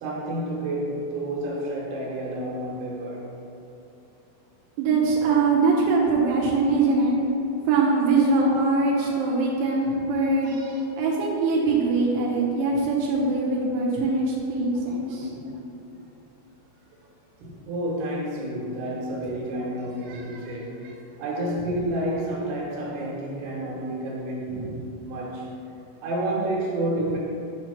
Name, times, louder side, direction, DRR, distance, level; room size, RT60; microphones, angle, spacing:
voice 1, 0.0-3.3 15.2-15.5 15.8-15.9 17.4-20.8 21.2-24.7 25.0-25.5 26.0-27.2, right 1 dB, 75° right, -4 dB, 3.1 m, -30 dB
voice 2, 4.8-7.2 7.7-15.3 20.1-20.2, right 3 dB, 90° right, -3 dB, 2.9 m, -22 dB
7.4 x 2.9 x 5.6 m, 2.9 s
omnidirectional pair, 4.9 m